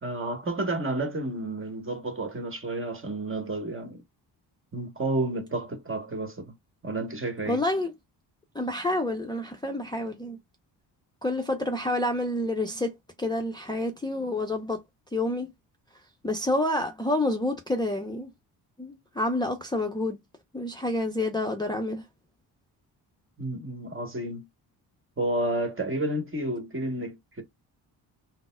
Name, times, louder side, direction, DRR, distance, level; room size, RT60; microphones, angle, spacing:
voice 1, 0.0-4.0 4.7-6.5 6.8-7.6 23.4-24.5 25.2-27.4, right 2 dB, 25° right, 1.3 m, -31 dB
voice 2, 7.5-7.9 8.5-10.4 11.2-12.9 13.2-14.8 15.1-15.5 16.2-18.3 18.8-20.2 20.5-22.0, left 1 dB, 10° left, 0.6 m, -28 dB
3.9 x 2.1 x 2.2 m
supercardioid pair, 55°, 46 cm